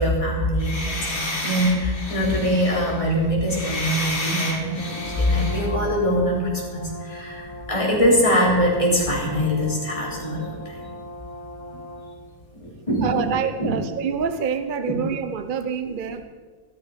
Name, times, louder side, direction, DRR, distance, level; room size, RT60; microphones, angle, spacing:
voice 1, 0.0-10.9 11.7-11.8 12.5-13.3 13.6-13.7, equal, 20° left, -4 dB, 3.8 m, -23 dB
sound 1, 0.6-5.7, left 2 dB, 40° left, 2.6 m, -31 dB
Brass instrument, 4.5-12.3, left 1 dB, 55° left, 3.1 m, -39 dB
voice 2, 13.0-16.2, right 6 dB, 45° right, 9 dB, 0.7 m, -26 dB
15.0 x 13.0 x 5.1 m, 1.5 s
omnidirectional pair, 1.5 m